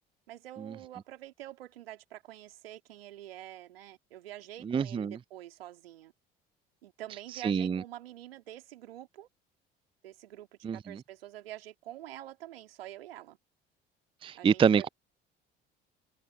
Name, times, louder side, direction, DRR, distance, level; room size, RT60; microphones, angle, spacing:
voice 1, 0.3-6.1 6.8-9.3 10.0-13.4 14.4-14.9, right 13 dB, 75° right, 2.8 m, -46 dB
voice 2, 4.6-5.2 7.4-7.8 10.6-11.0 14.2-14.9, right 7 dB, 20° right, 0.5 m, -26 dB
figure-of-eight pair, 55°, 29 cm